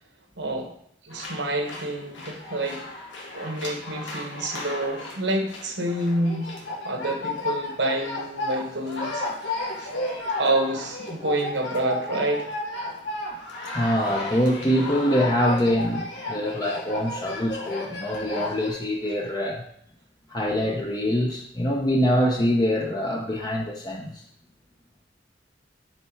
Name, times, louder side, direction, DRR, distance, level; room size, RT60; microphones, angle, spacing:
voice 1, 0.4-0.7 1.0-2.8 3.3-6.5 6.8-9.9 10.4-12.5, right 1 dB, 70° right, 4 dB, 1.2 m, -28 dB
sound 1, 1.1-18.7, left 2 dB, 85° left, 2.0 m, -33 dB
voice 2, 13.7-19.6 20.3-24.2, equal, 20° left, -1 dB, 0.7 m, -24 dB
9.0 x 4.3 x 4.5 m, 0.69 s
head